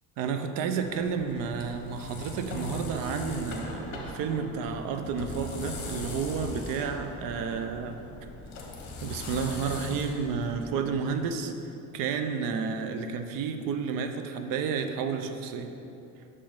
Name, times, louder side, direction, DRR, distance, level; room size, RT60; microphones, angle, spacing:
voice 1, 0.2-8.0 9.0-11.5 11.9-15.7, right 6 dB, 75° right, 6 dB, 0.7 m, -31 dB
sound 1, 0.8-11.1, left 3 dB, 55° left, 1.3 m, -40 dB
6.7 x 5.5 x 5.2 m, 2.8 s
cardioid pair, 165°, 33 cm